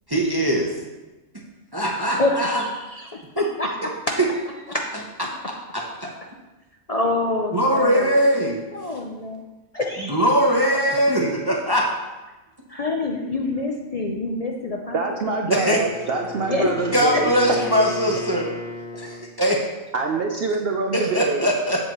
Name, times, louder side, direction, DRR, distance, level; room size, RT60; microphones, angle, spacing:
voice 1, 0.1-0.7 1.7-2.6 3.4-3.5 5.7-6.1 7.5-8.6 10.1-11.9 15.5-15.8 16.9-18.5 19.0-19.6 20.9-21.8, equal, 25° right, -1 dB, 0.6 m, -21 dB
voice 2, 2.2-3.9 4.7-5.1 6.9-8.2 8.7-9.4 9.7-10.2 12.7-15.0 15.3-15.8 16.5-16.7 17.1-17.2, left 2 dB, 55° left, 0 dB, 0.4 m, -27 dB
voice 3, 14.9-17.3 19.9-21.5, right 3 dB, 60° right, 2 dB, 0.7 m, -25 dB
Wind instrument woodwind instrument, 15.4-19.3, left 2 dB, 35° left, 1.4 m, -34 dB
7.7 x 7.4 x 3.0 m, 1.1 s
omnidirectional pair, 1.4 m